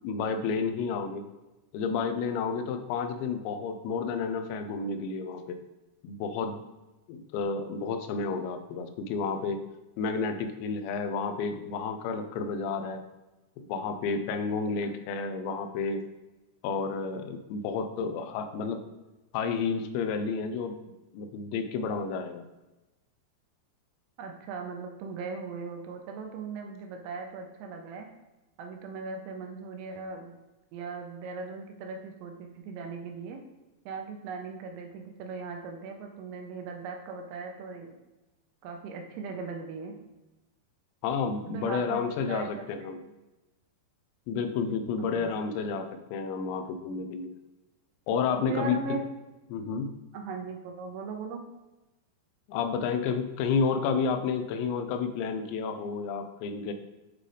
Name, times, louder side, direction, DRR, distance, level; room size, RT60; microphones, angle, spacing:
voice 1, 0.0-1.3 1.7-5.6 6.0-6.6 7.1-9.6 10.0-13.0 13.6-16.0 16.6-18.8 19.3-20.8 21.1-22.5 41.0-43.0 44.3-47.3 48.1-48.8 49.5-49.9 52.5-56.7, left 5 dB, 90° left, 8 dB, 2.9 m, -31 dB
voice 2, 24.2-28.1 28.6-30.4 30.7-33.4 33.9-37.9 38.6-40.0 41.5-42.5 42.8-42.9 45.0-45.3 48.5-49.0 50.1-51.4, right 4 dB, 80° right, 3 dB, 2.6 m, -39 dB
8.1 x 3.8 x 3.3 m, 1.1 s
omnidirectional pair, 5.0 m